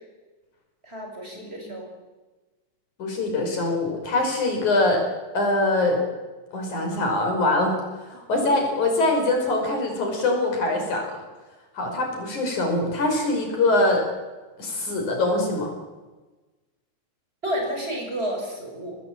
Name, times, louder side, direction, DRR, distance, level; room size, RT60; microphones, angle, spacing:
voice 1, 0.8-1.9 17.4-19.0, equal, 20° right, 1 dB, 6.6 m, -30 dB
voice 2, 1.3-1.7 3.0-5.0 5.3-6.0 6.5-7.8 8.1-11.1 11.7-14.0 14.6-15.7, left 2 dB, 80° left, 3 dB, 6.8 m, -23 dB
25.5 x 20.0 x 8.8 m, 1.2 s
omnidirectional pair, 3.4 m